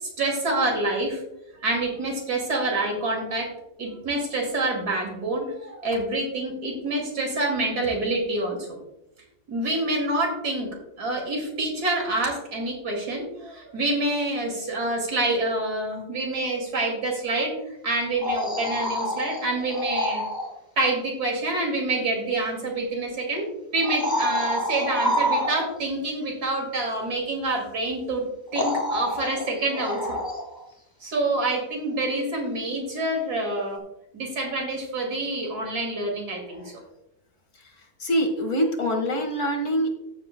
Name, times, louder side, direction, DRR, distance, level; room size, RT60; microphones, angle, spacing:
voice 1, 0.0-1.2 1.6-3.5 3.8-8.8 9.5-10.7 11.0-17.5 17.8-20.2 20.8-28.2 28.5-30.2 31.0-33.8 34.1-36.6, right 2 dB, 75° right, 1 dB, 2.9 m, -27 dB
sound 1, 18.0-20.5 22.4-22.5 23.8-26.0 27.9-28.0 28.5-30.7 33.7-33.8, equal, 15° left, 1.4 m, -28 dB
voice 2, 38.0-39.9, equal, 50° left, 4 dB, 1.9 m, -25 dB
14.0 x 7.9 x 2.2 m, 0.85 s
omnidirectional pair, 1.7 m